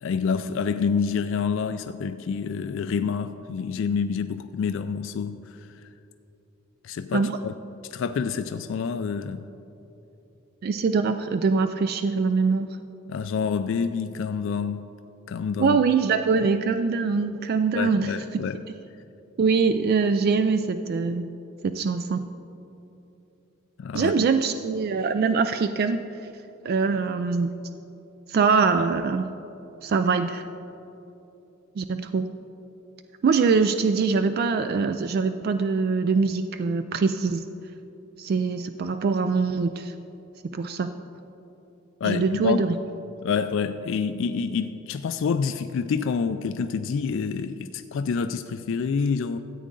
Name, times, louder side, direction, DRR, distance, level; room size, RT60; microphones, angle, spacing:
voice 1, 0.0-5.6 6.8-7.5 7.9-9.5 13.1-14.9 15.3-15.8 17.7-18.6 23.8-24.3 42.0-42.6 43.2-49.4, left 6 dB, 65° left, 10 dB, 0.3 m, -27 dB
voice 2, 10.6-12.7 15.6-18.4 19.4-21.3 21.6-22.2 23.9-26.0 26.6-27.5 28.3-29.3 29.8-30.4 31.8-32.3 33.2-37.4 38.2-39.9 40.5-40.9 42.0-42.8, right 5 dB, 50° right, 9 dB, 0.3 m, -23 dB
13.5 x 8.4 x 3.8 m, 2.9 s
head